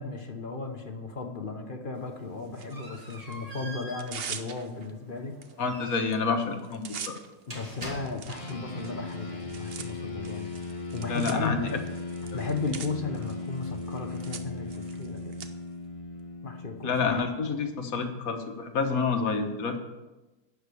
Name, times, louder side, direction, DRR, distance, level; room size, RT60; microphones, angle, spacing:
voice 1, 0.0-5.4 7.5-10.5 10.9-11.9 12.3-15.4 16.4-17.1, left 3 dB, 40° left, 4 dB, 0.9 m, -35 dB
sound 1, 1.9-8.6, right 1 dB, 25° right, 1.8 m, -45 dB
Tearing, 2.5-3.4 3.8-4.9 5.4-5.5 5.8-6.1 6.4-15.5, right 7 dB, 55° right, 0.6 m, -43 dB
voice 2, 5.6-7.2 11.1-11.6 16.8-19.8, left 4 dB, 60° left, 6 dB, 1.4 m, -28 dB
sound 2, 8.3-18.0, left 2 dB, 20° left, 1.3 m, -38 dB
11.5 x 4.9 x 8.4 m, 1.1 s
omnidirectional pair, 1.8 m